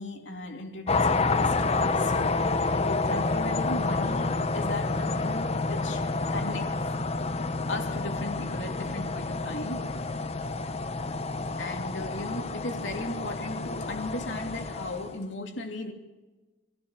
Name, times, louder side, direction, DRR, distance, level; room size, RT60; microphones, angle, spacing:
voice 1, 0.0-6.8 7.7-10.1 11.6-15.9, left 2 dB, 70° left, 2.9 m, -37 dB
sound 1, 0.9-15.2, left 3 dB, 35° left, 0.9 m, -29 dB
26.5 x 15.5 x 7.3 m
head